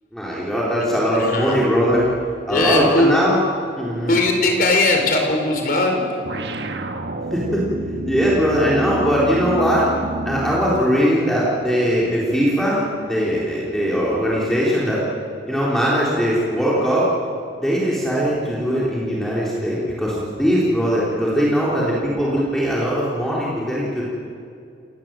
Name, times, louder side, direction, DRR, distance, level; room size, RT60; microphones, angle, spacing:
voice 1, 0.1-2.1 2.5-3.4 3.8-4.2 7.3-7.6 8.1-9.9 10.3-15.1 15.5-17.1 17.6-24.0, equal, ahead, -7 dB, 3.9 m, -20 dB
voice 2, 1.1-1.6 2.5-3.1 4.1-6.0, left 2 dB, 50° left, 3 dB, 4.7 m, -19 dB
sound 1, 6.2-11.0, right 1 dB, 70° right, 1.3 m, -28 dB
28.5 x 18.5 x 7.9 m, 2.4 s
head